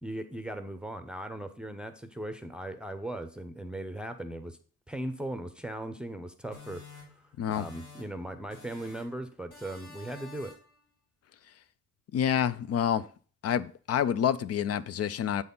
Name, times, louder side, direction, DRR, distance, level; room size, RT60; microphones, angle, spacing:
voice 1, 0.0-4.6 4.9-6.8 7.5-10.5, right 1 dB, 5° right, 0.7 m, -38 dB
sound 1, 6.5-8.2 8.5-9.2 9.5-10.8, left 4 dB, 90° left, 3.6 m, -50 dB
voice 2, 12.1-13.1 13.4-15.4, left 9 dB, 55° left, 0.5 m, -28 dB
7.8 x 4.2 x 5.4 m
cardioid pair, 90°, 30 cm